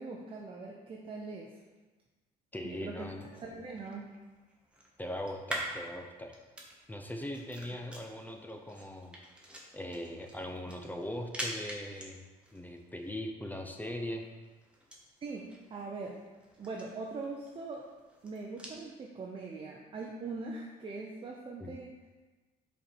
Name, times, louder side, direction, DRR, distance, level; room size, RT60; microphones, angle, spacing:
voice 1, 0.0-1.5 2.6-3.0 3.3-4.1 15.2-16.2 16.6-17.9 18.2-21.9, right 3 dB, 30° right, -1 dB, 0.7 m, -41 dB
voice 2, 2.5-3.3 5.0-6.4 6.9-9.2 9.7-12.2 12.5-14.3 21.6-21.7, left 1 dB, 10° left, 4 dB, 0.6 m, -40 dB
sound 1, 3.0-18.8, right 1 dB, 5° right, 1.1 m, -47 dB
5.3 x 4.4 x 4.4 m, 1.3 s
cardioid pair, 110°, 17 cm